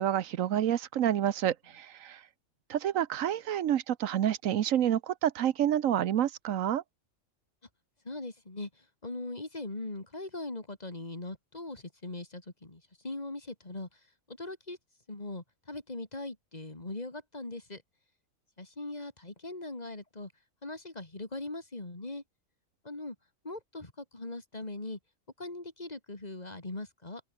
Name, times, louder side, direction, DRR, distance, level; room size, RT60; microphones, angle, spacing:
voice 1, 0.0-2.2 2.7-6.8, right 10 dB, 80° right, 1.2 m, -28 dB
voice 2, 8.0-13.9 14.3-14.8 15.1-17.8 18.6-20.3 20.6-22.2 22.8-23.2 23.4-25.0 25.4-27.2, left 2 dB, 30° left, 2.8 m, -40 dB
open air
omnidirectional pair, 1.4 m